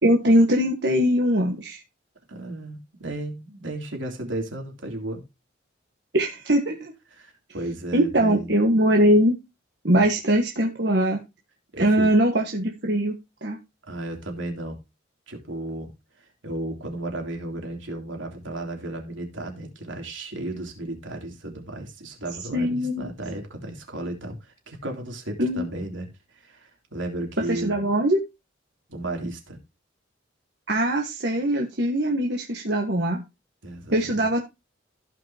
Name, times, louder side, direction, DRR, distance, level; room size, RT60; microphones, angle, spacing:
voice 1, 0.0-1.8 6.1-6.9 7.9-9.3 9.8-11.2 11.8-13.2 13.4-13.6 22.5-23.1 25.4-25.7 27.5-28.2 30.7-33.2 33.9-34.4, equal, 60° right, 1.5 m, -21 dB
voice 2, 2.3-5.2 7.1-8.5 10.0-10.1 11.7-12.1 13.9-14.8 15.3-27.8 28.9-29.6 33.6-34.3, right 1 dB, 85° right, 3.2 m, -34 dB
16.0 x 5.6 x 2.9 m
head